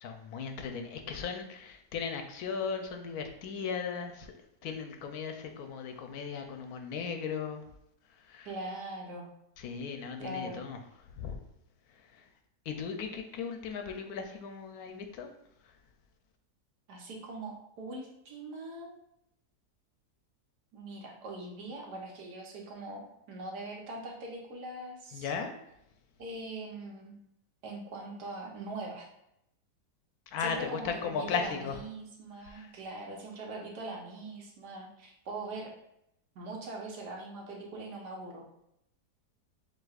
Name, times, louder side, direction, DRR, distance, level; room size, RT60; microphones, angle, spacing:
voice 1, 0.0-4.3 4.6-7.6 8.2-8.5 9.6-10.8 11.1-11.4 12.1-12.2 12.7-15.3 15.6-15.7 25.1-25.5 30.3-31.8 32.4-32.7, left 6 dB, 75° left, 5 dB, 1.0 m, -37 dB
voice 2, 8.4-9.3 10.2-10.6 16.9-18.9 20.7-23.0 23.3-25.3 26.2-27.2 27.6-29.1 30.4-35.7 36.3-38.4, right 2 dB, 85° right, 0 dB, 1.5 m, -41 dB
7.4 x 2.7 x 2.4 m, 0.79 s
omnidirectional pair, 1.7 m